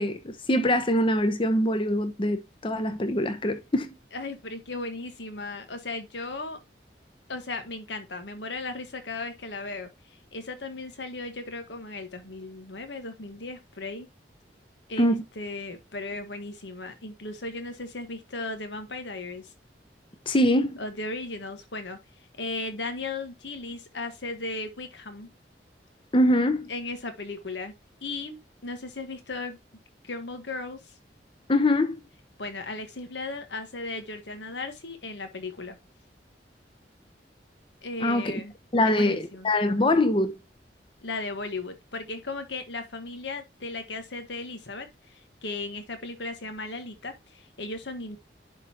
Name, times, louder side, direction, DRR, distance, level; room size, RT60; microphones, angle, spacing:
voice 1, 0.0-3.9 15.0-15.2 20.3-20.8 26.1-26.7 31.5-32.0 38.0-38.4 38.7-40.3, left 1 dB, 30° left, 0.8 m, -23 dB
voice 2, 4.1-6.6 7.3-9.9 10.3-14.1 14.9-19.5 20.8-22.0 22.4-25.3 26.7-27.7 28.0-29.6 30.0-30.9 32.4-35.8 37.8-38.5 38.8-39.5 41.0-48.2, left 3 dB, 80° left, 1.4 m, -36 dB
11.0 x 4.0 x 2.9 m
head